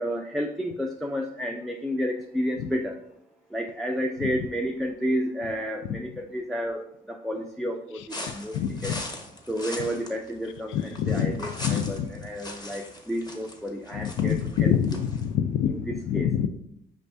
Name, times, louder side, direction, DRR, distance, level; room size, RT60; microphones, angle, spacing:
voice 1, 0.0-3.0 3.5-8.9 9.5-15.0 15.7-16.3, equal, ahead, 2 dB, 0.3 m, -31 dB
sound 1, 8.1-15.3, left 2 dB, 20° left, 0.8 m, -40 dB
voice 2, 11.0-11.3 11.6-11.9 14.0-14.4 14.6-15.7 16.1-16.5, left 9 dB, 80° left, 10 dB, 0.4 m, -25 dB
5.3 x 2.5 x 3.3 m, 0.74 s
cardioid pair, 90°, 20 cm